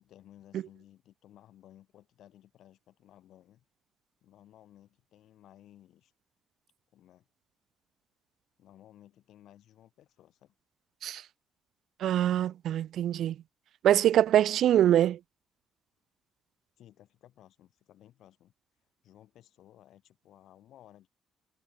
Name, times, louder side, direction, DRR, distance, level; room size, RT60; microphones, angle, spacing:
voice 1, 0.0-3.6 4.2-6.1 6.9-7.3 8.6-10.5 16.8-18.5 19.0-21.1, left 12 dB, 80° left, 6.7 m, -57 dB
voice 2, 12.0-13.4 13.8-15.2, right 11 dB, 75° right, 0.8 m, -24 dB
cardioid pair, 90°, 0 cm